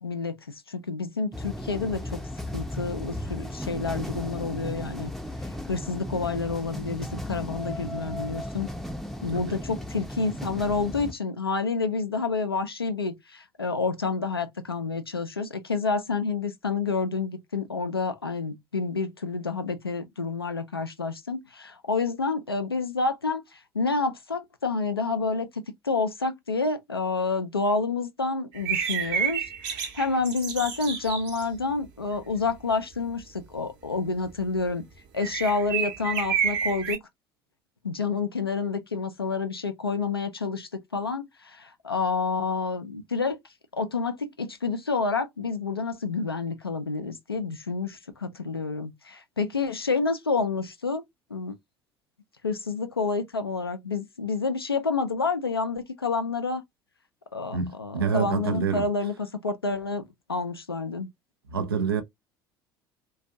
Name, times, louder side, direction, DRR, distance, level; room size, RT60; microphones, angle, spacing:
voice 1, 0.0-2.2 2.5-5.1 5.7-8.7 9.2-34.8 35.1-37.0 37.8-43.4 43.7-51.0 51.3-51.5 52.4-56.6 57.3-60.0 60.3-61.1, left 4 dB, 90° left, 0.4 m, -29 dB
sound 1, 1.3-11.1, left 1 dB, ahead, 0.5 m, -35 dB
sound 2, 28.5-31.4 35.2-37.0, right 7 dB, 60° right, 0.9 m, -29 dB
voice 2, 57.5-58.8 61.5-62.0, right 6 dB, 80° right, 0.4 m, -27 dB
2.4 x 2.2 x 2.6 m
figure-of-eight pair, 60°, 12 cm